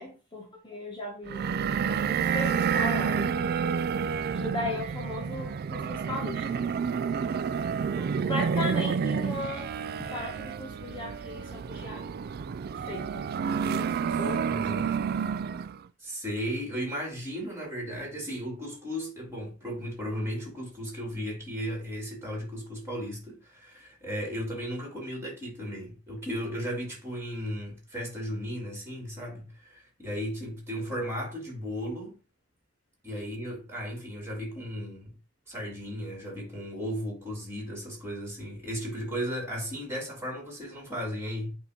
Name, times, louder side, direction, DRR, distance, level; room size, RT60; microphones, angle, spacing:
voice 1, 0.0-1.6 2.0-3.5 4.2-6.7 7.0-7.5 8.0-12.1 12.7-14.9, left 2 dB, 25° left, 1.3 m, -37 dB
sound 1, 1.3-15.8, right 6 dB, 50° right, 0.3 m, -29 dB
voice 2, 14.5-14.9 16.0-32.1 33.0-35.1 35.5-41.5, equal, 15° right, 3.1 m, -35 dB
8.3 x 2.8 x 5.1 m
head